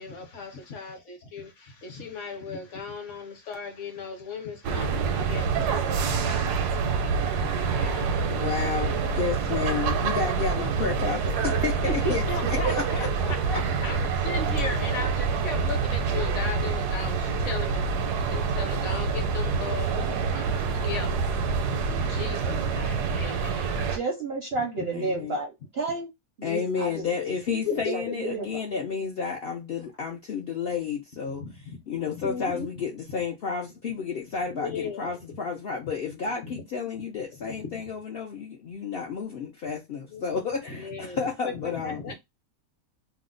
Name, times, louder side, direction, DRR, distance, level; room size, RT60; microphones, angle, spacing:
voice 1, 0.0-6.4 7.2-8.4 9.6-9.8 10.1-10.3 11.8-17.8 18.2-21.2 21.9-23.8 24.5-25.4 27.2-28.3 31.3-32.7 34.6-35.4 35.9-36.0 36.3-36.6 37.3-37.8 40.1-40.4 40.7-42.1, left 4 dB, 55° left, 1.0 m, -37 dB
sound 1, 4.6-24.0, right 5 dB, 80° right, 1.1 m, -26 dB
voice 2, 8.3-12.2 12.5-13.6 24.9-25.4 26.4-31.4 31.9-42.0, left 5 dB, 85° left, 0.5 m, -31 dB
voice 3, 23.8-26.1 26.4-27.4 27.9-28.6, right 3 dB, 65° right, 0.6 m, -32 dB
2.7 x 2.1 x 3.7 m
omnidirectional pair, 1.7 m